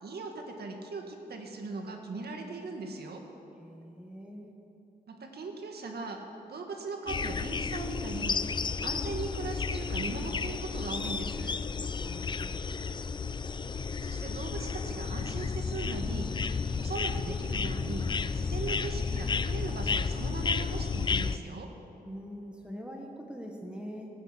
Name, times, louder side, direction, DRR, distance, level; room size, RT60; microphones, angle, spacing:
voice 1, 0.0-3.2 5.1-6.2 6.5-8.4 8.8-11.6 14.0-16.3 16.7-18.1 18.3-21.7, right 3 dB, 80° right, 3 dB, 2.0 m, -39 dB
voice 2, 3.6-4.5 12.0-12.5 22.0-24.1, equal, 5° right, 0 dB, 1.2 m, -43 dB
sound 1, 7.1-21.4, left 5 dB, 30° left, 0.4 m, -32 dB
19.0 x 9.5 x 7.7 m, 3.0 s
wide cardioid pair, 150°, 16 cm